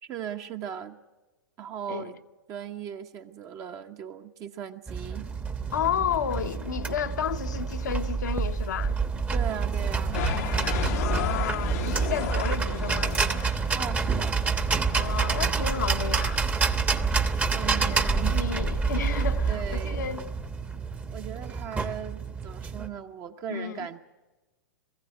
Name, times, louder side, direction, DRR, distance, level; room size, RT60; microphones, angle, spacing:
voice 1, 0.0-1.0 1.6-2.2 2.5-5.3 9.3-10.2 13.7-14.4 17.5-18.4 19.5-20.0 21.1-24.0, right 9 dB, 35° right, 1.0 m, -38 dB
sound 1, 4.9-22.9, right 5 dB, 15° right, 1.0 m, -28 dB
voice 2, 5.7-8.9 10.9-13.2 14.9-16.5 17.8-20.2 23.5-23.9, left 8 dB, 75° left, 1.0 m, -32 dB
sound 2, 10.1-14.5, left 11 dB, 55° left, 0.8 m, -34 dB
21.5 x 15.0 x 9.1 m
hypercardioid pair, 110°, 10 cm